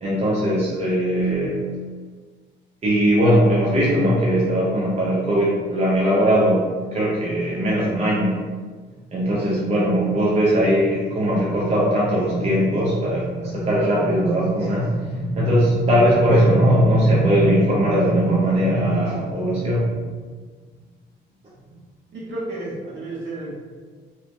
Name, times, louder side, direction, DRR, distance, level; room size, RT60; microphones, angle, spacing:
voice 1, 0.0-1.7 2.8-8.4 9.1-19.9, equal, 35° right, -7 dB, 0.6 m, -19 dB
voice 2, 22.1-23.6, right 2 dB, 65° right, -8 dB, 1.4 m, -31 dB
2.9 x 2.0 x 2.6 m, 1.5 s
cardioid pair, 90°, 20 cm